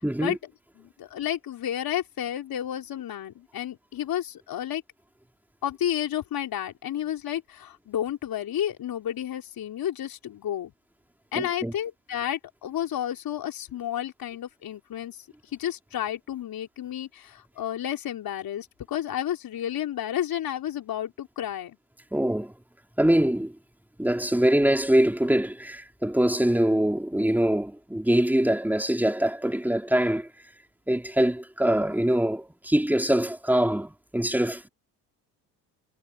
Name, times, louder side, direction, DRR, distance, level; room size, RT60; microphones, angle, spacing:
voice 1, 0.0-0.4 11.4-11.7 22.1-22.5 23.0-23.6 24.0-30.3 30.9-34.7, right 1 dB, 5° right, 3.8 m, -23 dB
voice 2, 0.8-4.8 5.6-10.7 11.3-15.2 15.5-21.8, left 11 dB, 55° left, 3.9 m, -31 dB
supercardioid pair, 70°, 42 cm